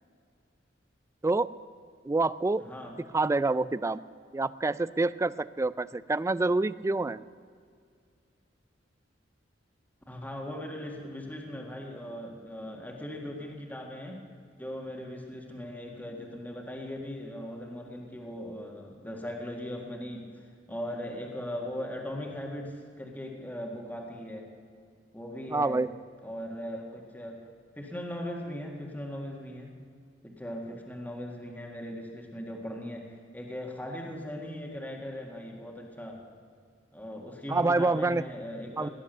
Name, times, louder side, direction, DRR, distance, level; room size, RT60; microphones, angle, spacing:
voice 1, 2.1-2.6 3.1-4.0 4.3-5.3 5.6-7.2 25.5-25.9 37.5-38.2 38.8-38.9, right 3 dB, 15° right, 17 dB, 0.3 m, -26 dB
voice 2, 2.6-3.0 10.1-14.2 14.6-20.3 20.7-24.5 25.1-25.8 26.2-27.4 27.8-29.7 30.2-36.2 36.9-38.9, left 1 dB, 10° left, 0 dB, 1.8 m, -39 dB
18.0 x 11.0 x 6.7 m, 2.2 s
head